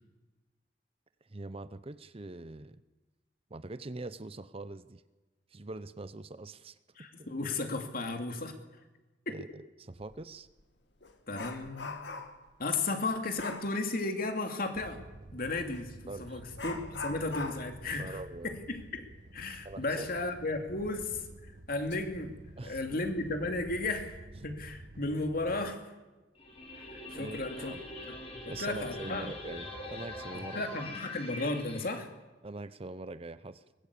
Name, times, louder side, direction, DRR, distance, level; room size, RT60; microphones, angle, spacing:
voice 1, 1.3-2.8 3.5-5.0 5.5-6.8 9.3-10.5 16.1-16.4 18.0-18.5 19.6-20.1 22.6-23.0 27.1-27.8 28.5-30.6 32.4-33.6, right 2 dB, 30° right, 14 dB, 0.7 m, -43 dB
voice 2, 7.0-8.6 9.3-9.4 11.3-12.0 12.6-15.0 15.3-18.2 18.4-21.2 21.7-22.3 22.6-25.8 26.8-27.7 28.3-29.3 30.3-32.1, left 2 dB, 55° left, 5 dB, 2.7 m, -34 dB
Dog, 10.0-10.2 10.6-12.5 13.4-13.7 15.7-15.9 16.6-19.9 20.2-20.3 20.8-20.9 21.6-22.0 22.3-22.6, left 3 dB, 70° left, 2.1 m, -42 dB
sound 1, 14.7-25.7, right 1 dB, 50° right, 1.1 m, -50 dB
sound 2, 26.4-31.9, left 2 dB, 35° left, 4.2 m, -43 dB
22.5 x 20.0 x 8.5 m, 1.2 s
head